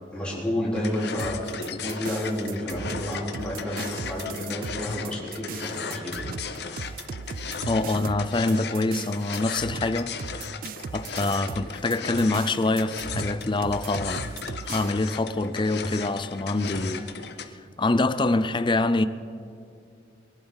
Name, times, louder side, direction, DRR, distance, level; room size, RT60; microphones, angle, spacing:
voice 1, 0.1-6.2, left 1 dB, 5° left, 4.2 m, -30 dB
sound 1, 0.7-17.4, left 5 dB, 60° left, 0.9 m, -36 dB
sound 2, 1.2-14.9, right 6 dB, 50° right, 0.3 m, -38 dB
voice 2, 7.7-10.1 10.9-14.3 14.7-17.2 17.5-19.0, left 2 dB, 25° left, 0.5 m, -25 dB
23.5 x 11.5 x 4.1 m
head